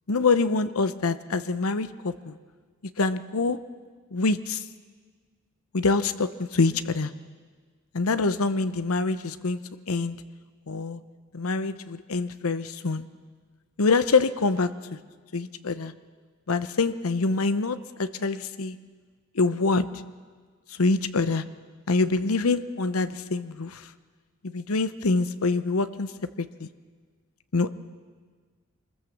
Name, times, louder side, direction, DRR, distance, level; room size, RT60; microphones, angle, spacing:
voice 1, 0.1-2.4 3.0-3.6 4.1-4.7 5.7-7.1 7.9-9.6 9.9-10.2 10.7-11.0 11.3-13.1 13.8-15.0 15.3-15.9 16.5-18.8 19.3-19.9 20.7-21.4 21.9-23.9 24.4-26.1 26.4-26.7 27.5-27.7, left 3 dB, 80° left, 13 dB, 0.8 m, -25 dB
24.5 x 21.0 x 7.2 m, 1.5 s
head